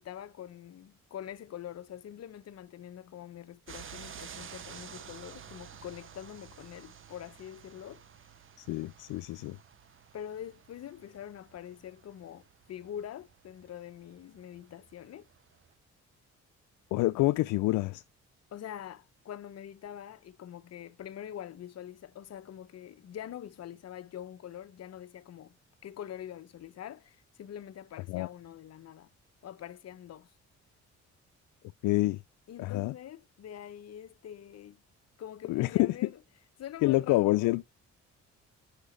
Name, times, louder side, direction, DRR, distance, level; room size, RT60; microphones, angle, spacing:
voice 1, 0.0-8.0 10.1-15.3 18.5-25.6 25.8-29.1 29.4-30.3 32.5-34.8 35.2-36.2 36.6-37.6, left 10 dB, 55° left, 0.9 m, -44 dB
sound 1, 3.7-15.7, right 8 dB, 45° right, 0.9 m, -51 dB
voice 2, 8.6-9.6 16.9-18.0 28.1-28.3 31.8-32.2 32.6-32.9 35.5-35.9 36.8-37.6, left 19 dB, 90° left, 0.5 m, -27 dB
8.3 x 5.8 x 5.0 m
cardioid pair, 90°, 30 cm